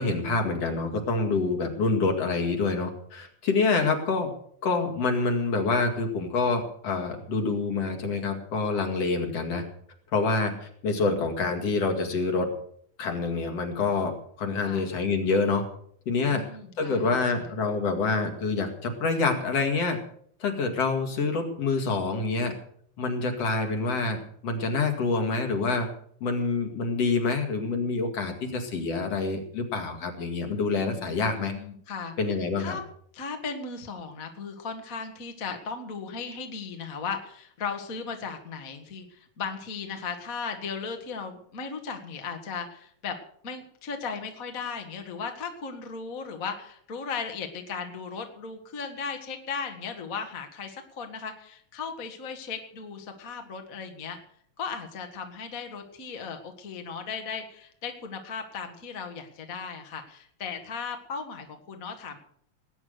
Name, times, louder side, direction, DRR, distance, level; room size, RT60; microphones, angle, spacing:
voice 1, 0.0-4.3 4.6-9.6 10.1-12.5 13.0-14.1 14.4-15.6 16.1-16.5 16.8-20.0 20.4-22.5 23.0-25.9 26.2-31.5 32.2-32.8, left 3 dB, 55° left, 5 dB, 3.1 m, -27 dB
voice 2, 14.6-14.9 16.2-17.5 30.9-32.1 32.6-32.8 33.1-43.2 43.4-54.2 54.6-62.2, left 5 dB, 35° left, 5 dB, 1.6 m, -36 dB
19.0 x 9.6 x 6.6 m, 0.63 s
omnidirectional pair, 3.4 m